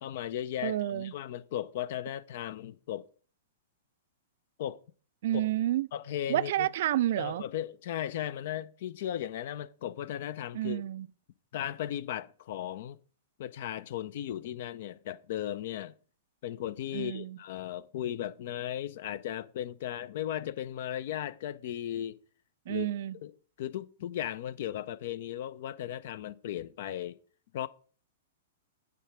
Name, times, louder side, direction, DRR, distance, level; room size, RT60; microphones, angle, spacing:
voice 1, 0.0-3.1 4.6-4.8 5.3-5.4 5.9-6.7 7.2-10.8 11.5-13.0 13.4-15.9 16.4-22.2 22.7-22.9 23.2-23.3 23.6-27.2 27.5-27.7, left 11 dB, 50° left, 0.4 m, -36 dB
voice 2, 0.6-1.1 5.2-5.9 6.3-7.4 10.5-11.1 16.9-17.4 22.7-23.2, right 13 dB, 50° right, 0.3 m, -30 dB
9.3 x 3.6 x 5.0 m
figure-of-eight pair, 105°, 0 cm